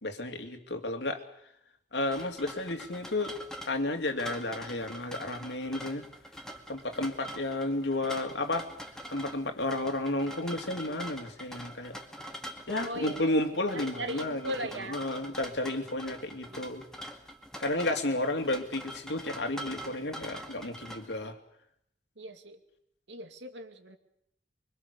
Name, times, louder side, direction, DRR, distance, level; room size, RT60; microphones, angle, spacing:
voice 1, 0.0-1.2 1.9-3.4 3.6-6.0 6.7-8.7 9.1-12.0 12.7-14.5 14.9-16.8 17.6-21.4, left 2 dB, 70° left, 6 dB, 2.8 m, -32 dB
sound 1, 2.1-21.3, right 1 dB, 5° left, 2.3 m, -44 dB
voice 2, 12.7-15.0 16.5-16.6 18.1-18.2 22.2-22.6 23.1-24.0, right 1 dB, 80° right, 7 dB, 2.5 m, -39 dB
24.5 x 24.5 x 6.9 m, 0.71 s
head